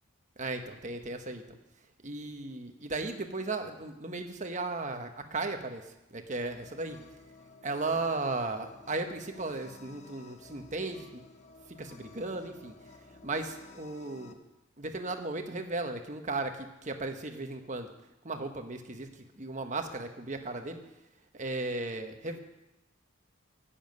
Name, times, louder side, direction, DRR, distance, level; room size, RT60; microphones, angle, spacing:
voice 1, 0.4-1.6 2.0-5.8 6.1-7.0 7.6-11.2 11.8-12.7 13.2-14.4 14.8-17.9 18.2-19.1 19.4-20.8 21.3-22.4, right 3 dB, 35° right, 6 dB, 1.2 m, -36 dB
sound 1, 6.3-14.3, left 3 dB, 35° left, 0.9 m, -54 dB
11.0 x 7.3 x 9.4 m, 0.95 s
head